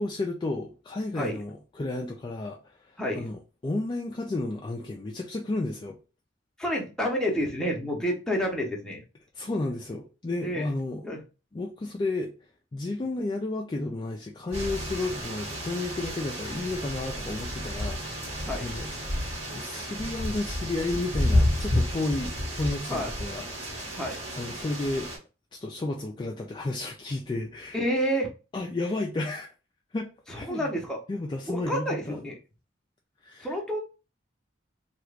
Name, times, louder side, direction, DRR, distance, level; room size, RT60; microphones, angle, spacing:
voice 1, 0.0-2.6 2.9-6.0 9.3-11.0 11.5-12.3 12.7-18.9 19.5-24.0 24.4-25.1 25.5-27.8 28.5-29.5 29.9-30.7 31.1-32.2 33.2-33.5, left 2 dB, 25° left, 0.3 m, -32 dB
voice 2, 6.6-9.0 10.4-10.7 11.0-11.2 18.4-18.7 22.9-23.1 23.9-24.2 27.7-28.3 30.3-31.0 31.5-32.4 33.4-33.8, equal, 5° left, 0.8 m, -29 dB
sound 1, 14.5-25.2, left 1 dB, 35° right, 1.4 m, -31 dB
2.9 x 2.4 x 3.2 m
head